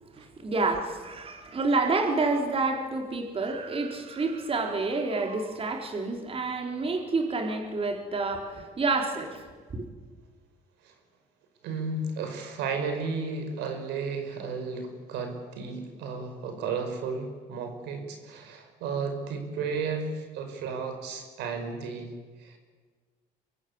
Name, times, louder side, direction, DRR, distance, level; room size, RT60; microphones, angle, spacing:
voice 1, 0.2-9.4 9.7-9.9, right 3 dB, 35° right, 4 dB, 4.0 m, -28 dB
voice 2, 11.6-22.6, right 4 dB, 90° right, 6 dB, 5.4 m, -33 dB
24.5 x 22.5 x 8.8 m, 1.5 s
cardioid pair, 110°, 17 cm